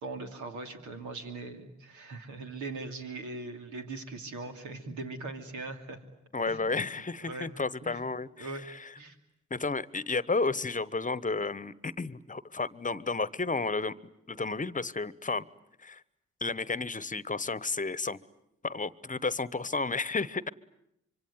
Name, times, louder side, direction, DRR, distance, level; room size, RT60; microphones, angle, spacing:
voice 1, 0.0-6.0 6.5-6.6 7.2-7.5 7.8-8.0 8.4-8.6 9.0-9.2, right 3 dB, 80° right, 5 dB, 2.8 m, -40 dB
voice 2, 6.3-8.9 9.5-13.9 14.3-15.4 15.8-16.0 16.4-18.2 18.6-20.5, left 3 dB, 25° left, 19 dB, 1.1 m, -32 dB
25.5 x 25.0 x 9.5 m, 0.79 s
supercardioid pair, 45°, 29 cm